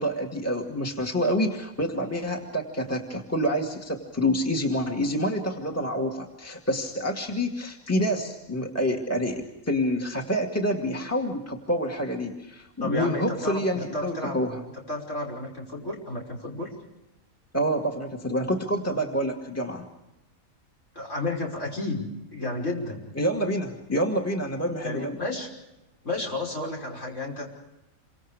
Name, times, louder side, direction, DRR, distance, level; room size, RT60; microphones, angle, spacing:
voice 1, 0.0-14.6 17.5-19.9 23.2-25.2, equal, 10° left, 1 dB, 2.3 m, -27 dB
voice 2, 12.8-13.6 13.9-14.4 14.9-16.7 20.9-23.1 24.8-25.5 26.0-27.5, left 2 dB, 60° left, -1 dB, 6.1 m, -32 dB
28.5 x 25.0 x 5.0 m, 0.96 s
omnidirectional pair, 1.5 m